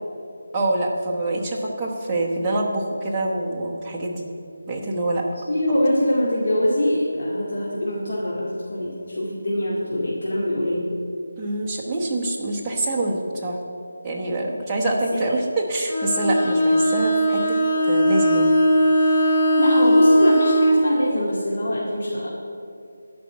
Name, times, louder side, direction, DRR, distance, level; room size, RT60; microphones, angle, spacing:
voice 1, 0.5-4.3 4.7-5.3 11.4-13.6 14.0-18.5, right 2 dB, 10° right, -6 dB, 1.0 m, -25 dB
voice 2, 5.5-10.9 15.1-15.3 19.6-22.3, left 1 dB, 55° left, -5 dB, 2.2 m, -23 dB
Bowed string instrument, 15.9-20.9, equal, 25° left, 1.6 m, -18 dB
11.5 x 5.3 x 8.5 m, 2.5 s
figure-of-eight pair, 175°, 0 cm